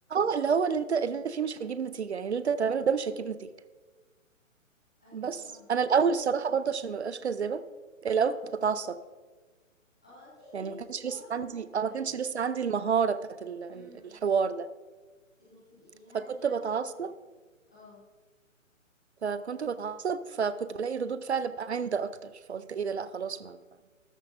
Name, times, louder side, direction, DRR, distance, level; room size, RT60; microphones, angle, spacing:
voice 1, 0.1-3.5 5.1-5.4 5.7-7.6 8.0-9.0 10.5-13.9 14.2-14.7 16.1-17.1 19.2-23.6, right 6 dB, 55° right, 15 dB, 0.6 m, -29 dB
voice 2, 5.0-5.7 10.0-12.2 13.6-14.2 15.3-17.1 17.7-18.0, left 2 dB, 5° left, -9 dB, 0.5 m, -53 dB
13.5 x 13.0 x 2.6 m, 1.3 s
figure-of-eight pair, 135°, 40 cm